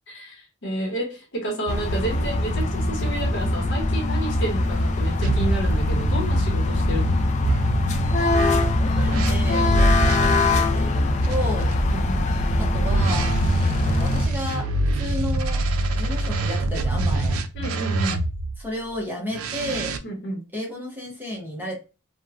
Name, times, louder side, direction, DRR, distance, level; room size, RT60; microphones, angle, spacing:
voice 1, 0.1-7.3 11.9-12.3 17.5-18.2 20.0-20.5, right 1 dB, 55° left, 0.8 m, -30 dB
sound 1, 1.7-14.3, left 2 dB, 35° left, 0.3 m, -22 dB
sound 2, 5.2-10.3 11.2-18.6 19.3-20.0, right 2 dB, 85° right, 0.4 m, -25 dB
voice 2, 7.9-11.7 12.6-14.7 14.9-15.6 15.9-17.4 18.6-19.9 20.5-21.8, left 1 dB, 10° right, 0.8 m, -32 dB
3.0 x 2.1 x 2.4 m
head